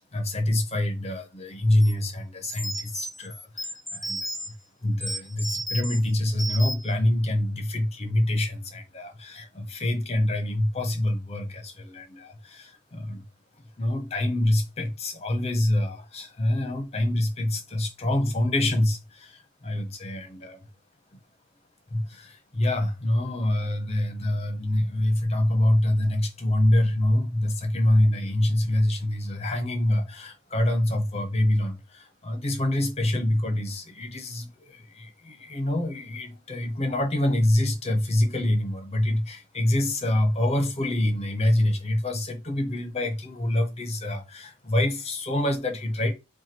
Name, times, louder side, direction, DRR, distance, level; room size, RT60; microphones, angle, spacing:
voice 1, 0.0-4.3 4.8-13.2 13.8-20.6 21.9-46.1, left 1 dB, 30° left, 1.0 m, -26 dB
sound 1, 1.8-1.9 2.4-4.5 5.0-6.0 6.4-6.9, right 1 dB, ahead, 0.4 m, -33 dB
4.7 x 2.4 x 4.4 m
head